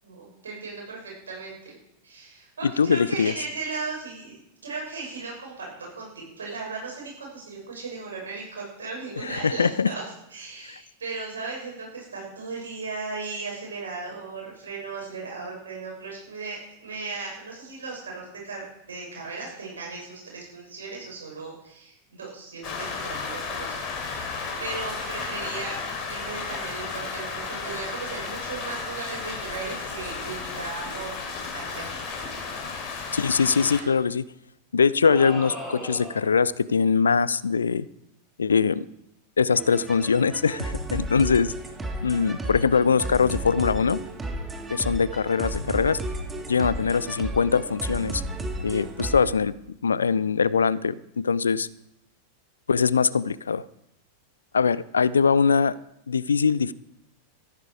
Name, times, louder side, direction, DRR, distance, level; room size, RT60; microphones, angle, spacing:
voice 1, 0.0-1.7 2.0-10.0 10.3-23.7 24.0-25.8 26.1-31.2 31.5-31.9, right 4 dB, 70° right, -2 dB, 6.7 m, -37 dB
voice 2, 2.6-3.3 9.2-9.9 10.7-10.8 33.1-34.2 34.7-37.9 38.4-38.8 39.4-41.5 42.0-44.0 44.7-46.0 46.5-48.2 48.6-49.5 49.8-51.7 52.7-53.6 54.5-55.7 56.1-56.7, left 5 dB, 70° left, 20 dB, 0.5 m, -22 dB
Rain, 22.6-33.8, left 4 dB, 35° left, 3.2 m, -33 dB
sound 1, 35.0-36.4, equal, 5° left, 5.7 m, -36 dB
sound 2, 39.5-49.3, right 1 dB, 10° right, 1.8 m, -33 dB
14.5 x 11.5 x 4.9 m, 0.80 s
figure-of-eight pair, 90°, 0 cm